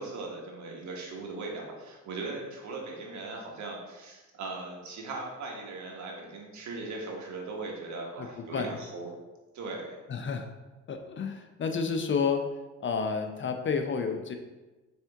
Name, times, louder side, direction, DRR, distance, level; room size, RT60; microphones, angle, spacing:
voice 1, 0.0-9.1 9.5-10.0, right 3 dB, 70° right, -1 dB, 1.2 m, -39 dB
voice 2, 8.2-8.8 10.1-10.5 10.9-12.5 12.8-14.3, left 5 dB, 40° left, 5 dB, 0.5 m, -30 dB
4.3 x 3.5 x 3.4 m, 1.2 s
cardioid pair, 90°, 30 cm